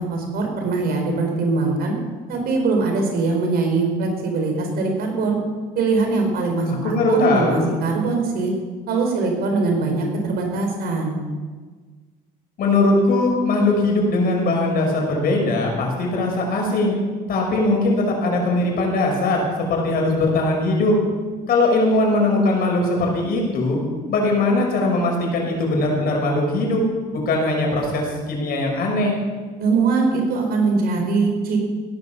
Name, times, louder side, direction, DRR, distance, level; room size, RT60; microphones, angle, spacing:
voice 1, 0.0-2.0 2.3-5.4 5.7-8.5 8.9-11.2 29.6-31.6, right 3 dB, 65° right, 2 dB, 4.8 m, -22 dB
voice 2, 6.7-7.7 12.6-16.9 17.3-21.0 21.5-23.8 24.1-26.8 27.1-29.1, left 2 dB, 65° left, 0 dB, 5.9 m, -20 dB
17.0 x 11.0 x 7.2 m, 1.4 s
cardioid pair, 110°, 17 cm